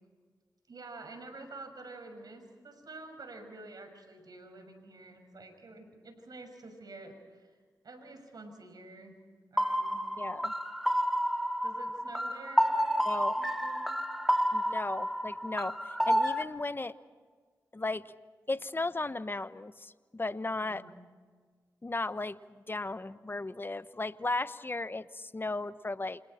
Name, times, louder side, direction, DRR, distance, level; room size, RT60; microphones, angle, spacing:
voice 1, 0.7-7.6 7.8-9.2 9.5-10.1 11.6-14.0 20.6-20.9, right 2 dB, 65° right, 5 dB, 6.1 m, -49 dB
sound 1, 9.6-16.4, equal, 5° right, 2.1 m, -30 dB
voice 2, 10.2-10.5 13.1-13.3 14.5-15.8 16.1-16.9 17.7-18.1 18.5-20.8 21.8-22.4 22.7-26.2, left 2 dB, 30° left, 13 dB, 1.1 m, -35 dB
29.0 x 28.0 x 4.5 m, 1.5 s
cardioid pair, 45°, 7 cm